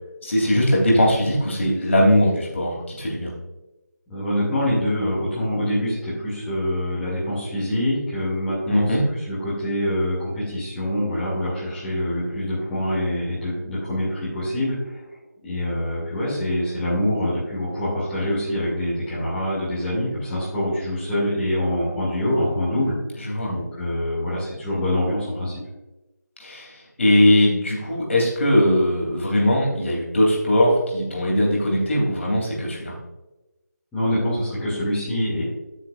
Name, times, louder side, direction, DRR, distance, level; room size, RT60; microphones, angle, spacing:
voice 1, 0.2-3.3 8.7-9.0 23.2-23.5 26.4-26.7 27.0-33.0, left 1 dB, 45° left, -3 dB, 3.2 m, -20 dB
voice 2, 4.1-8.9 9.3-15.0 15.4-22.9 23.5-25.6 33.9-35.4, left 1 dB, 5° left, -12 dB, 2.4 m, -25 dB
13.0 x 6.7 x 2.6 m, 1.0 s
figure-of-eight pair, 160°, 10 cm